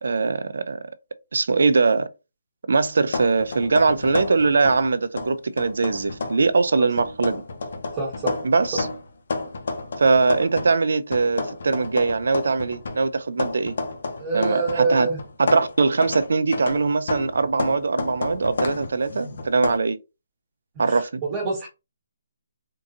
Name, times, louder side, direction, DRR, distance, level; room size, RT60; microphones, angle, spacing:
voice 1, 0.0-0.8 1.3-2.1 2.7-7.4 8.4-8.9 10.0-13.7 14.3-15.1 15.4-20.0 20.8-21.2, right 4 dB, 75° right, 0.4 m, -21 dB
sound 1, 3.1-4.9 5.2-6.5 7.0-10.8 11.1-14.9 15.2-19.8, left 3 dB, 60° left, 0.8 m, -31 dB
voice 2, 8.0-8.3 14.2-15.2 20.7-21.7, right 3 dB, 15° right, 1.3 m, -26 dB
3.7 x 2.7 x 2.6 m
hypercardioid pair, 170°, 0 cm